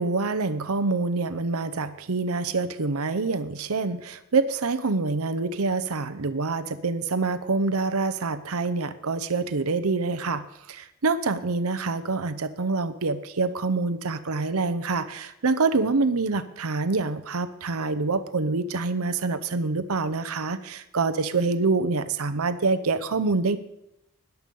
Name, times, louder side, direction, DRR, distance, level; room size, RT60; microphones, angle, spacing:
voice 1, 0.0-23.6, right 3 dB, 75° right, 12 dB, 0.8 m, -26 dB
14.0 x 10.5 x 5.4 m, 0.86 s
head